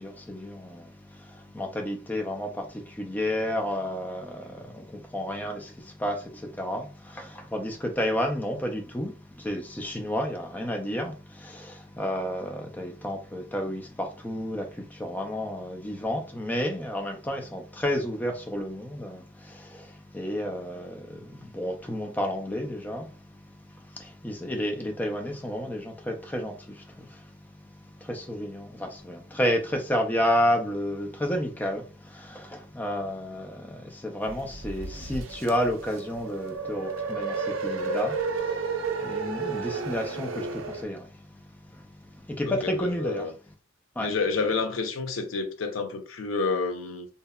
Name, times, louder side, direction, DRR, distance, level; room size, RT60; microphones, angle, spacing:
voice 1, 0.0-43.3 44.0-44.1, equal, 10° left, 0.3 m, -31 dB
sound 1, 34.3-40.8, right 4 dB, 85° right, 0.4 m, -32 dB
voice 2, 42.5-43.3 44.0-47.1, left 4 dB, 85° left, 0.5 m, -29 dB
2.7 x 2.1 x 2.2 m
head